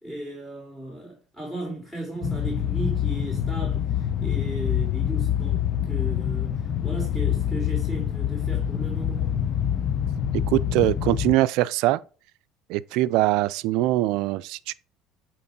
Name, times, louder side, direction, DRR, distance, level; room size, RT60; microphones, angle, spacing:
voice 1, 0.0-3.8 4.2-6.5 6.8-9.3, right 1 dB, 10° left, 3.5 m, -35 dB
sound 1, 2.2-11.4, left 9 dB, 50° left, 0.6 m, -26 dB
voice 2, 10.3-12.0 12.7-14.7, right 16 dB, 70° right, 0.3 m, -22 dB
7.8 x 3.0 x 5.2 m
supercardioid pair, 95°, 0 cm